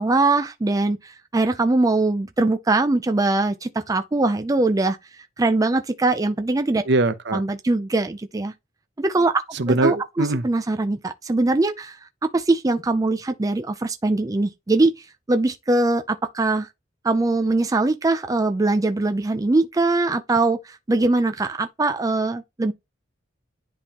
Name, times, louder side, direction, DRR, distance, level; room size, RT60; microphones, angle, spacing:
voice 1, 0.0-5.0 5.4-6.8 7.3-8.5 9.0-16.7 17.0-22.7, right 2 dB, 20° right, 0.4 m, -22 dB
voice 2, 6.9-7.4 9.5-10.4, right 2 dB, 65° right, 0.7 m, -21 dB
10.5 x 3.5 x 2.9 m
head